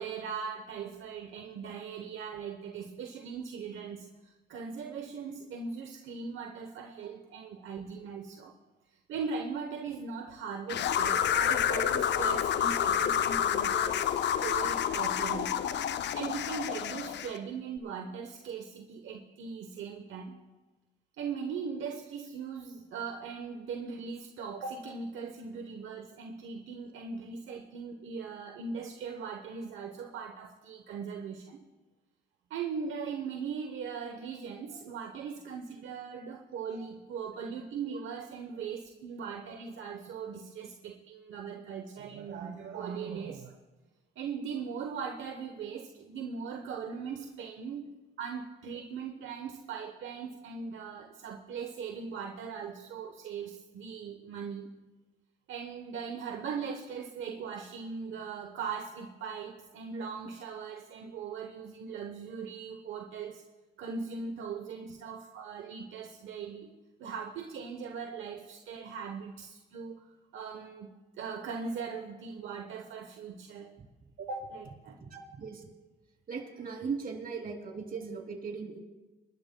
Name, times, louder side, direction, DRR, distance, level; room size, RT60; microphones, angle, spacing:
voice 1, 0.0-8.5 8.9-15.6 16.1-20.4 21.2-31.7 32.5-43.5 44.2-54.7 55.5-63.4 63.8-66.7 67.0-73.7 74.2-75.0, right 6 dB, 75° right, 3 dB, 1.0 m, -39 dB
sound 1, 10.7-17.4, left 9 dB, 60° left, 0.5 m, -29 dB
voice 2, 75.0-75.7 76.3-78.8, right 5 dB, 45° right, 1 dB, 2.9 m, -38 dB
26.5 x 12.0 x 2.2 m, 1.1 s
cardioid pair, 90°, 20 cm